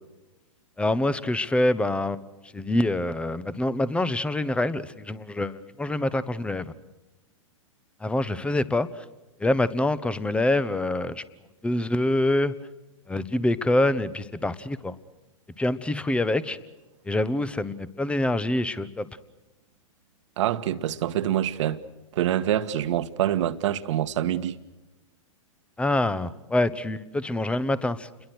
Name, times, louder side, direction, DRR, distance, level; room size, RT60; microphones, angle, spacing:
voice 1, 0.8-2.2 2.5-6.7 8.0-9.0 9.4-11.2 11.6-12.5 13.1-14.9 15.6-16.6 17.1-19.1 25.8-28.1, left 1 dB, 5° left, 1.2 m, -25 dB
voice 2, 20.4-21.8 22.1-24.6, right 11 dB, 65° right, 1.6 m, -25 dB
29.0 x 22.0 x 6.3 m
hypercardioid pair, 120°, 17 cm